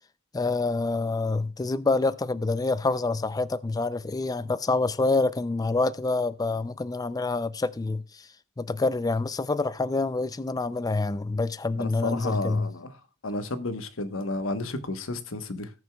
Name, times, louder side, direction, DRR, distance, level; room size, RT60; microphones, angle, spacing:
voice 1, 0.3-8.3 8.6-12.7, left 3 dB, 20° left, 0.4 m, -27 dB
voice 2, 11.8-12.9 13.2-15.7, left 2 dB, 75° left, 1.1 m, -32 dB
18.5 x 6.3 x 2.2 m
head